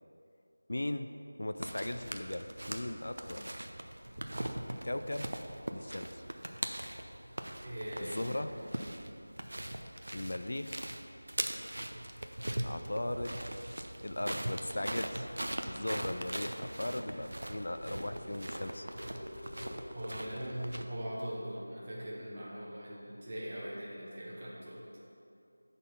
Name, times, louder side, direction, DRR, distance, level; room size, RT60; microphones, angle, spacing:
voice 1, 0.7-1.1 1.4-3.5 4.8-5.3 5.7-6.2 8.0-8.5 10.1-10.8 12.6-13.4 14.0-15.3 15.7-18.8, left 1 dB, 60° left, 8 dB, 0.4 m, -38 dB
sound 1, 1.6-20.8, right 1 dB, 70° right, 0.6 m, -41 dB
voice 2, 7.6-8.7 19.9-24.8, equal, 25° right, -6 dB, 1.5 m, -41 dB
sound 2, 17.4-24.7, left 1 dB, 20° left, 0.7 m, -52 dB
9.6 x 4.1 x 5.7 m, 2.6 s
figure-of-eight pair, 170°, 0 cm